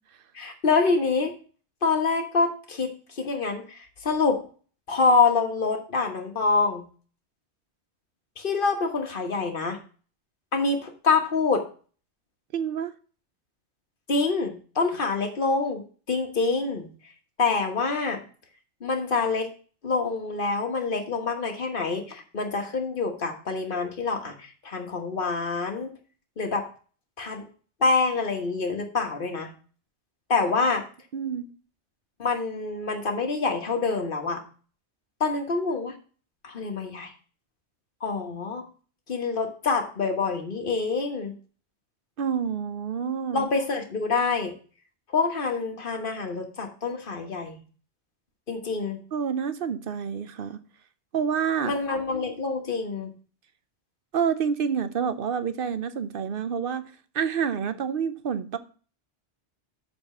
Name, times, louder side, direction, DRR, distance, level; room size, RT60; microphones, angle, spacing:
voice 1, 0.3-1.3 1.8-4.4 4.9-6.9 8.4-9.8 10.5-11.6 14.1-16.9 17.4-18.2 18.8-19.5 19.8-25.9 26.4-26.7 27.2-27.4 27.8-29.5 30.3-30.8 32.2-34.4 35.2-35.9 36.4-37.1 38.0-38.6 39.1-41.3 43.3-44.5 45.1-47.6 48.5-49.0 51.6-53.1, left 4 dB, 50° left, 1.5 m, -26 dB
voice 2, 12.5-12.9 31.1-31.5 42.2-43.5 49.1-50.6 51.1-51.7 54.1-56.9 57.1-58.6, right 7 dB, 55° right, 0.8 m, -28 dB
6.9 x 4.2 x 6.6 m
omnidirectional pair, 1.2 m